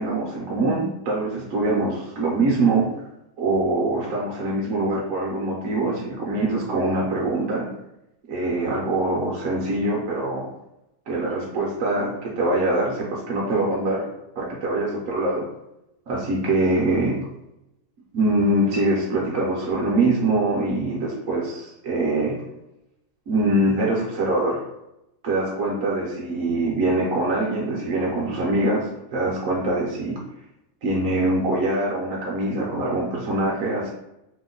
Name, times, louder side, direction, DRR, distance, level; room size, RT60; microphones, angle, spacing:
voice 1, 0.0-2.9 3.4-7.7 8.3-10.5 11.1-14.1 14.4-15.5 16.1-17.1 18.1-22.4 23.3-24.6 25.2-30.2 30.8-33.9, right 2 dB, 65° right, -4 dB, 0.9 m, -23 dB
2.9 x 2.1 x 3.8 m, 0.88 s
omnidirectional pair, 1.7 m